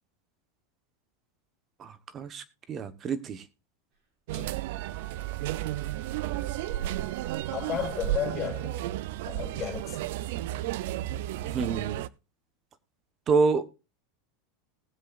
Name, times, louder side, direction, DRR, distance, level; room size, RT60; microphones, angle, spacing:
voice 1, 1.8-3.4 6.3-6.4 11.5-12.0 13.3-13.7, right 4 dB, 25° right, 1.1 m, -28 dB
sound 1, 4.3-12.1, right 14 dB, 65° right, 0.5 m, -33 dB
Wind instrument woodwind instrument, 4.7-9.0, right 8 dB, 45° right, 7.3 m, -49 dB
voice 2, 7.5-8.7 9.3-10.3, left 9 dB, 25° left, 5.7 m, -34 dB
20.0 x 7.7 x 2.5 m
supercardioid pair, 150°, 0 cm